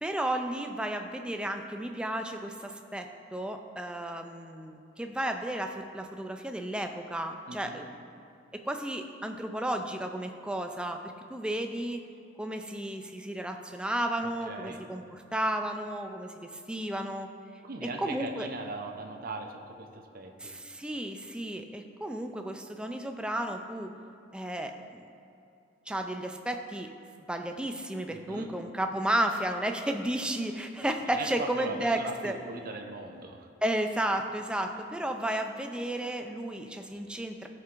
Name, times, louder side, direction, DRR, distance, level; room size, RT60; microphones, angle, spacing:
voice 1, 0.0-7.9 8.5-11.0 11.3-12.0 12.4-17.3 18.0-18.5 20.4-23.9 24.3-25.1 25.9-26.9 27.3-32.4 33.6-37.5, right 1 dB, 5° right, 5 dB, 0.3 m, -33 dB
voice 2, 7.5-7.9 14.5-14.8 17.6-20.6 28.1-28.5 31.1-33.5 34.7-34.8, right 3 dB, 50° right, 3 dB, 0.6 m, -40 dB
12.5 x 4.6 x 2.5 m, 2.7 s
head